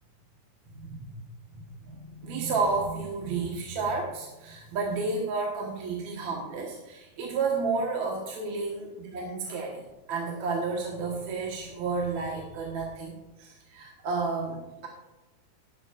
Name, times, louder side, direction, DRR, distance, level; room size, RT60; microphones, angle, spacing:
voice 1, 0.7-1.2 1.5-9.8 10.1-13.1 13.4-14.9, right 4 dB, 75° right, -2 dB, 2.7 m, -31 dB
20.5 x 7.4 x 2.5 m, 1.1 s
omnidirectional pair, 3.3 m